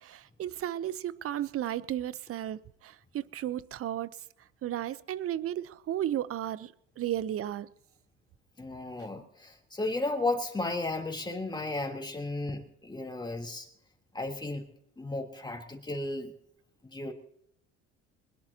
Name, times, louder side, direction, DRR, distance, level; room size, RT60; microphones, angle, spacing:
voice 1, 0.0-4.1 4.6-7.7, right 11 dB, 45° right, 0.8 m, -34 dB
voice 2, 8.6-13.7 14.1-14.6 15.0-16.3 16.8-17.1, left 2 dB, 15° left, 3.4 m, -34 dB
22.5 x 21.0 x 2.9 m
supercardioid pair, 80°, 31 cm